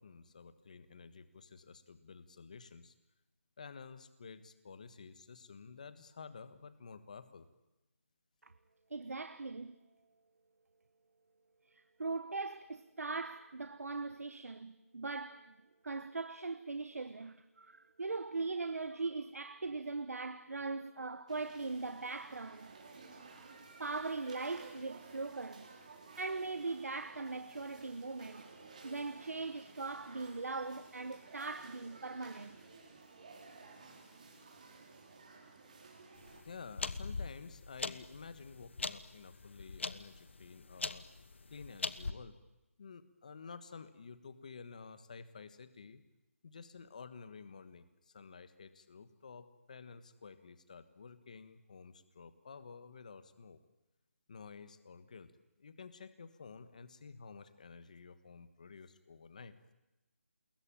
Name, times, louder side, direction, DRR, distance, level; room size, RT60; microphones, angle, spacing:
voice 1, 0.0-2.9 3.6-7.4 36.4-41.1 41.5-42.4 42.8-46.0 46.4-53.6 54.3-55.3 55.6-59.6, left 5 dB, 30° left, 1.5 m, -52 dB
voice 2, 8.9-9.8 11.7-15.5 15.8-22.7 23.8-25.7 26.2-28.5 28.8-32.6, right 3 dB, 80° right, 1.3 m, -40 dB
sound 1, 21.3-36.4, right 4 dB, 30° right, 4.2 m, -55 dB
sound 2, 36.2-42.1, left 4 dB, 55° left, 1.2 m, -42 dB
28.0 x 21.5 x 9.0 m
hypercardioid pair, 180°, 8 cm